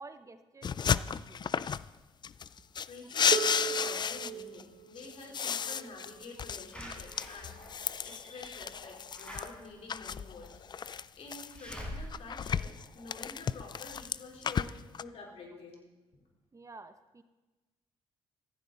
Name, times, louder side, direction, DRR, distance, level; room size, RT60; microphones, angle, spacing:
voice 1, 0.0-1.5 14.7-14.8 16.5-17.2, right 3 dB, 30° right, 9 dB, 1.0 m, -50 dB
sound 1, 0.6-1.9 2.2-4.6 5.0-9.5 9.9-11.7 12.1-15.0, left 7 dB, 40° left, 0.4 m, -33 dB
voice 2, 2.3-10.6 11.1-15.8 16.1-16.2, left 3 dB, 65° left, -1 dB, 4.1 m, -49 dB
Harp, 3.3-9.1 10.2-10.3, right 9 dB, 75° right, 1.2 m, -41 dB
Slam / Alarm, 6.7-13.5 14.0-14.1 14.4-14.5, equal, 10° left, 5.6 m, -47 dB
15.5 x 14.5 x 4.1 m, 1.1 s
supercardioid pair, 70°, 11 cm